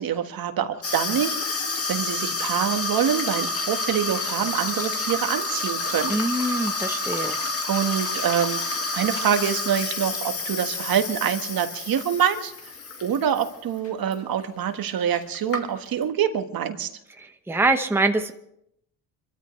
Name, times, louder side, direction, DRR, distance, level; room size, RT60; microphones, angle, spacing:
voice 1, 0.0-1.6 1.9-6.2 7.7-8.6 8.9-12.5 13.0-16.9, right 9 dB, 60° right, 7 dB, 1.6 m, -25 dB
Water tap faucet / Sink (filling or washing), 0.8-13.5 13.8-14.1 14.9-15.0 15.1-16.0, left 3 dB, 35° left, 2.0 m, -29 dB
voice 2, 6.1-7.4 17.5-18.3, right 2 dB, 5° right, 6 dB, 0.9 m, -23 dB
26.5 x 13.5 x 3.2 m, 0.77 s
cardioid pair, 105°, 39 cm